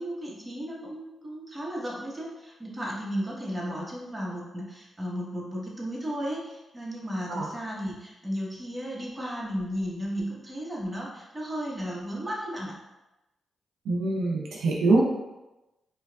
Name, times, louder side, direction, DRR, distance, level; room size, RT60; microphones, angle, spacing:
voice 1, 0.0-12.7, equal, 20° right, -4 dB, 1.1 m, -34 dB
voice 2, 13.9-15.0, right 2 dB, 85° right, -3 dB, 0.5 m, -24 dB
4.5 x 2.3 x 2.3 m, 1.0 s
supercardioid pair, 50°, 0 cm